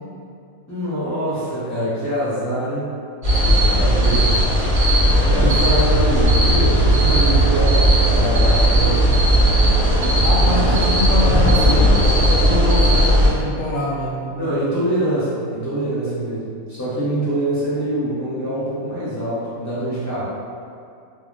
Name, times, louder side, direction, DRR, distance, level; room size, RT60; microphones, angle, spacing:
voice 1, 0.7-2.9 3.4-4.5 5.2-9.4 10.0-10.7 11.0-11.8 12.9-13.0 14.3-20.2, right 1 dB, 15° left, -13 dB, 0.6 m, -25 dB
sound 1, 3.2-13.3, right 1 dB, 35° right, 0.6 m, -16 dB
voice 2, 5.0-5.7 10.2-14.6, left 1 dB, 70° left, -7 dB, 0.9 m, -25 dB
2.3 x 2.2 x 3.7 m, 2.4 s
omnidirectional pair, 1.5 m